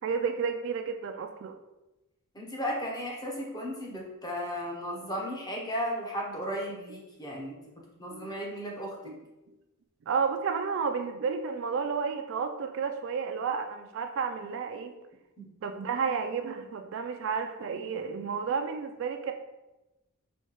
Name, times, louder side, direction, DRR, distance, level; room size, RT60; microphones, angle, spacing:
voice 1, 0.0-1.6 8.1-8.3 9.0-9.2 10.1-14.9 15.6-19.3, right 5 dB, 60° right, 6 dB, 0.3 m, -31 dB
voice 2, 2.3-9.0 15.4-15.5, equal, 20° left, -2 dB, 0.8 m, -35 dB
4.4 x 2.8 x 3.0 m, 1.0 s
head